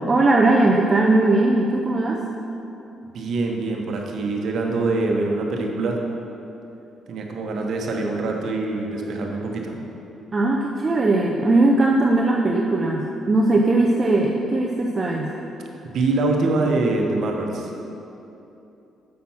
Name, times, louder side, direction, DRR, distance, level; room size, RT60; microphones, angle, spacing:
voice 1, 0.1-2.2 10.3-15.4, right 2 dB, 35° right, -1 dB, 0.7 m, -19 dB
voice 2, 3.1-6.0 7.1-9.8 15.8-17.7, right 2 dB, 65° right, 1 dB, 1.1 m, -24 dB
7.6 x 5.9 x 5.7 m, 2.8 s
cardioid pair, 90°, 0 cm